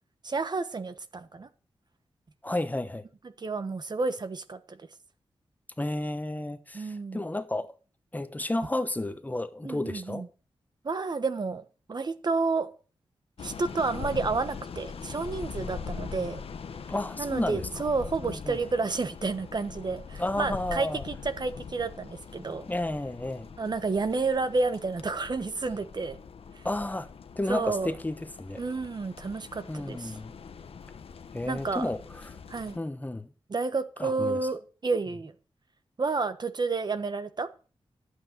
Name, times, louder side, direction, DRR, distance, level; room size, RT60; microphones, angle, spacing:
voice 1, 0.2-1.5 3.4-4.8 6.7-7.2 9.6-10.3 10.8-11.6 11.9-12.7 13.4-16.4 17.2-22.7 23.6-26.2 26.5-26.6 27.5-27.9 28.6-30.2 31.5-31.9 32.5-32.8 33.5-35.3 36.0-37.5, right 4 dB, 45° right, 1.2 m, -30 dB
voice 2, 2.4-3.0 5.8-7.7 8.1-10.2 16.9-17.7 18.2-18.6 20.2-21.0 22.7-23.5 26.6-27.1 27.4-28.6 29.7-30.3 31.3-32.4 32.7-33.3 34.0-34.4, left 1 dB, 15° left, 1.0 m, -32 dB
sound 1, 13.4-32.8, left 6 dB, 80° left, 1.1 m, -42 dB
12.0 x 7.9 x 6.5 m
wide cardioid pair, 90°, 10 cm